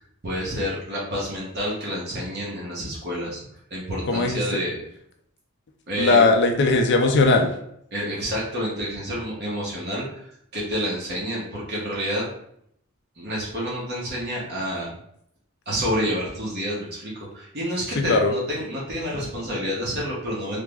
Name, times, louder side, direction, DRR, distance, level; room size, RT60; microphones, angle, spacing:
voice 1, 0.2-3.4 3.7-4.8 5.9-6.2 7.9-10.3 10.5-12.3 13.2-14.9 15.7-20.6, equal, 50° right, -5 dB, 0.9 m, -29 dB
voice 2, 4.1-4.6 6.0-7.5 18.0-18.3, left 3 dB, 55° left, 3 dB, 0.4 m, -19 dB
3.4 x 2.0 x 3.4 m, 0.71 s
head